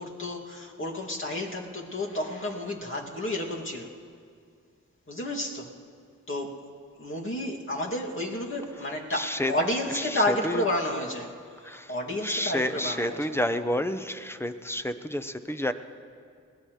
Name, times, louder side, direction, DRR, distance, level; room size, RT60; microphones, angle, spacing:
voice 1, 0.0-3.9 5.1-5.7 6.3-6.6 7.0-11.3 11.6-13.3, left 1 dB, 40° left, -2 dB, 2.6 m, -31 dB
voice 2, 9.1-9.5 9.9-10.6 11.6-11.9 12.2-15.7, left 1 dB, 10° left, 9 dB, 0.9 m, -30 dB
21.5 x 17.0 x 3.3 m, 2.2 s
cardioid pair, 45°, 32 cm